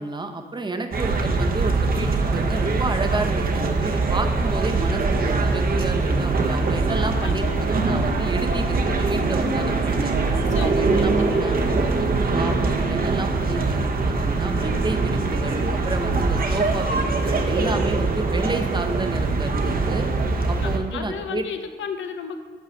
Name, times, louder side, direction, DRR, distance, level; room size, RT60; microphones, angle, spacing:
voice 1, 0.0-10.1 10.6-11.6 12.3-20.1 20.5-21.4, right 3 dB, 25° right, 6 dB, 0.9 m, -30 dB
sound 1, 0.9-20.8, right 3 dB, 50° right, 0.9 m, -22 dB
voice 2, 7.1-7.6 10.5-10.7 11.0-11.8 17.7-17.8 20.6-22.4, left 6 dB, 85° left, 7 dB, 0.7 m, -34 dB
8.3 x 4.7 x 6.4 m, 1.5 s
cardioid pair, 80°, 19 cm